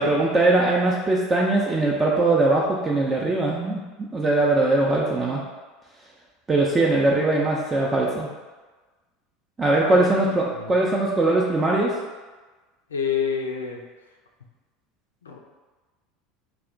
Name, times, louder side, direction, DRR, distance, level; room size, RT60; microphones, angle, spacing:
voice 1, 0.0-3.8 4.1-5.4 6.5-8.3 9.6-11.9, right 2 dB, 20° right, -3 dB, 0.4 m, -21 dB
voice 2, 9.8-10.8 12.9-13.8 15.2-15.4, left 6 dB, 75° left, 2 dB, 0.3 m, -29 dB
2.3 x 2.0 x 3.8 m, 1.3 s
figure-of-eight pair, 70°, 0 cm